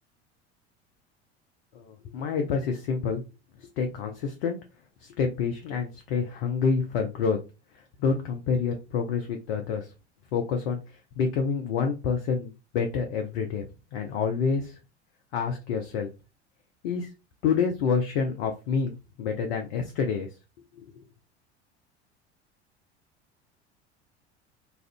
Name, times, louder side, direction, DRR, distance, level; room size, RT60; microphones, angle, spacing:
voice 1, 1.7-3.2 3.6-4.6 5.0-7.4 8.0-9.9 10.3-13.6 13.9-14.7 15.3-16.1 16.8-17.1 17.4-18.9 19.2-20.3 20.8-21.0, left 5 dB, 55° left, 4 dB, 0.6 m, -28 dB
2.5 x 2.4 x 3.4 m, 0.29 s
figure-of-eight pair, 70°, 34 cm